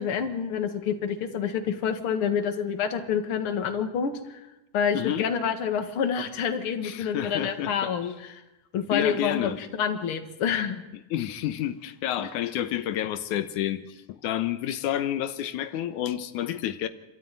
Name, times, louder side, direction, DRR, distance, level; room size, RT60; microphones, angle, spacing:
voice 1, 0.0-4.4 4.7-8.3 8.7-10.8 12.2-12.3, left 7 dB, 50° left, 7 dB, 2.4 m, -28 dB
voice 2, 4.9-5.3 6.8-7.9 8.9-9.6 11.1-16.9, left 11 dB, 90° left, 10 dB, 2.4 m, -29 dB
28.0 x 13.5 x 9.2 m, 0.98 s
omnidirectional pair, 3.4 m